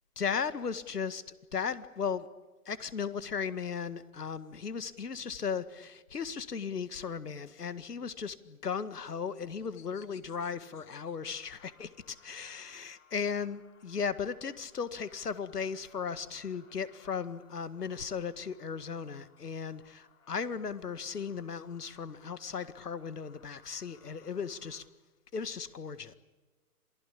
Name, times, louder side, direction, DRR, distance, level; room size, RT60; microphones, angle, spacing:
voice 1, 0.2-1.2 1.5-2.3 2.7-24.9 25.3-26.1, left 6 dB, 85° left, 14 dB, 1.9 m, -36 dB
sound 1, 8.3-12.3 13.6-17.8, left 10 dB, 15° left, 1.3 m, -63 dB
sound 2, 10.7-24.8, left 6 dB, 65° left, 6.6 m, -64 dB
27.5 x 19.5 x 8.6 m, 1.2 s
hypercardioid pair, 145°, 46 cm